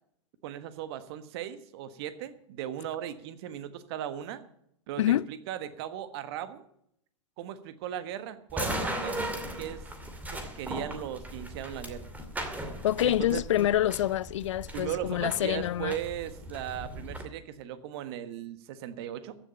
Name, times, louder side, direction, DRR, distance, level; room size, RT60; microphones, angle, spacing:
voice 1, 0.4-4.4 4.9-6.6 7.4-9.8 10.3-12.1 13.0-13.4 14.7-19.4, right 11 dB, 55° right, 1.4 m, -37 dB
sound 1, 8.5-17.2, right 1 dB, 10° right, 2.4 m, -38 dB
voice 2, 12.8-16.0, left 12 dB, 70° left, 0.5 m, -26 dB
15.0 x 7.2 x 9.0 m
hypercardioid pair, 110°, 16 cm